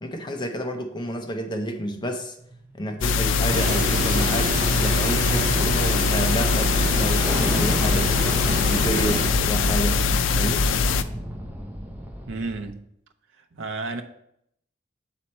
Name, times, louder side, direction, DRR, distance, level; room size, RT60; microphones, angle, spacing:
voice 1, 0.0-2.4 2.7-8.1 8.6-10.0 10.4-10.7, equal, 25° left, 4 dB, 0.7 m, -30 dB
sound 1, 2.5-12.7, equal, 10° right, 0.8 m, -32 dB
sound 2, 3.0-11.0, left 5 dB, 90° left, 0.4 m, -22 dB
sound 3, 3.5-9.3, right 2 dB, 45° right, 0.6 m, -28 dB
voice 2, 12.3-12.8 13.5-14.0, right 3 dB, 90° right, 5 dB, 0.6 m, -31 dB
7.6 x 4.2 x 4.3 m, 0.73 s
head